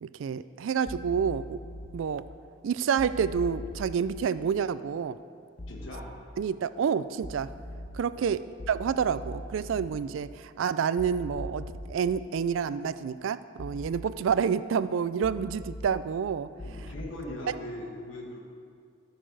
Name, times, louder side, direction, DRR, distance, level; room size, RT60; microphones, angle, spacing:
voice 1, 0.0-1.6 1.9-2.2 2.6-5.2 6.4-7.5 7.9-8.4 8.7-16.5, right 7 dB, 80° right, 15 dB, 0.3 m, -28 dB
sound 1, 0.9-1.9 3.0-3.9 5.6-5.9 7.2-7.9 8.6-9.9 11.0-11.9 13.6-13.9 15.2-15.9 16.6-17.0, left 1 dB, 40° left, 0.9 m, -40 dB
voice 2, 5.6-6.1 8.1-8.4 16.6-18.4, left 1 dB, 80° left, -1 dB, 1.4 m, -40 dB
14.0 x 6.7 x 4.6 m, 2.2 s
head